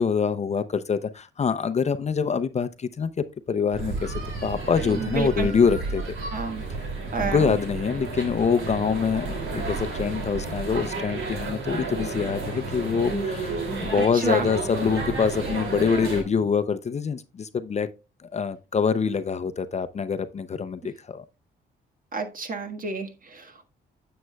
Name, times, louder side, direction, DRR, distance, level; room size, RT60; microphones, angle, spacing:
voice 1, 0.0-3.1 3.5-6.2 6.8-18.0 18.3-21.2, left 6 dB, 35° left, 0.6 m, -25 dB
sound 1, 3.7-16.2, right 3 dB, 80° right, 2.7 m, -32 dB
voice 2, 5.0-5.5 6.3-6.6 7.1-7.6 14.2-14.5 22.1-23.7, right 4 dB, 45° right, 1.5 m, -29 dB
9.5 x 7.9 x 2.3 m
cardioid pair, 90°, 20 cm